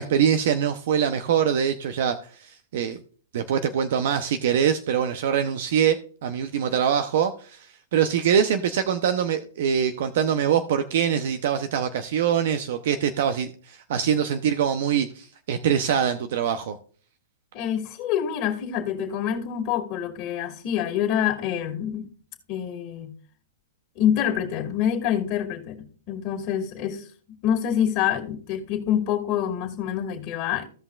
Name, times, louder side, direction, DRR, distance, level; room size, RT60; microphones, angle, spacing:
voice 1, 0.0-3.0 3.3-7.7 7.9-16.8, right 8 dB, 60° right, 0.7 m, -24 dB
voice 2, 17.5-22.1 22.5-23.2 24.0-27.0 27.4-30.7, left 9 dB, 40° left, 2.3 m, -26 dB
16.0 x 5.5 x 2.4 m
hypercardioid pair, 130°, 0 cm